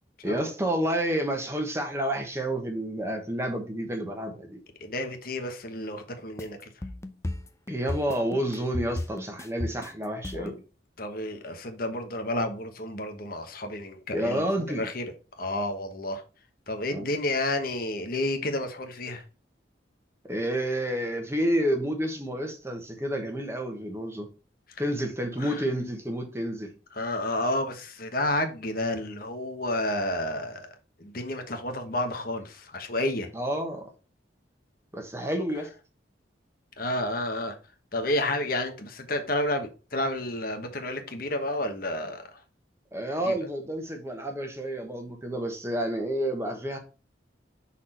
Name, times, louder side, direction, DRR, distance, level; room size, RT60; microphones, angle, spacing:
voice 1, 0.2-4.6 7.7-10.6 14.1-14.9 16.9-17.1 20.3-24.3 24.8-26.7 33.3-33.9 34.9-35.7 42.9-46.8, right 1 dB, 15° right, 1.1 m, -29 dB
voice 2, 4.8-6.7 10.3-10.5 11.0-14.4 14.8-15.1 15.4-16.2 16.7-19.2 25.4-25.7 26.9-30.7 31.0-33.3 36.8-37.5 37.9-42.4 43.2-43.4, left 1 dB, 55° left, 1.1 m, -30 dB
sound 1, 6.4-10.6, left 1 dB, 15° left, 0.6 m, -34 dB
5.9 x 4.2 x 4.4 m
head